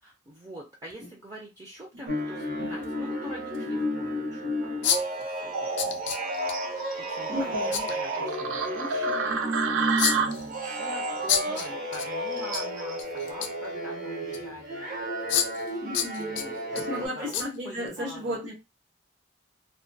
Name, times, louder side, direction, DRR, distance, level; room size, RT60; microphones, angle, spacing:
voice 1, 0.0-6.1 6.5-14.9 15.2-15.4 16.2-18.4, equal, 20° right, -3 dB, 0.4 m, -45 dB
sound 1, 0.9-1.0 2.8-2.9 3.5-3.6 4.8-5.2 5.8-6.5 7.7-7.9 10.0-10.5 11.3-12.1 12.4-12.6 13.0-13.7 14.3-14.4 15.3-15.7 15.9-16.8 17.3-17.5 17.9-18.0, left 9 dB, 70° left, 0.3 m, -28 dB
sound 2, 2.1-17.1, equal, 45° right, 0.7 m, -33 dB
sound 3, 5.5-13.0, right 4 dB, 85° right, 0.4 m, -32 dB
voice 2, 7.3-7.8 15.8-16.4 16.7-18.5, equal, 65° right, -5 dB, 1.0 m, -34 dB
2.2 x 2.2 x 2.6 m, 0.25 s
head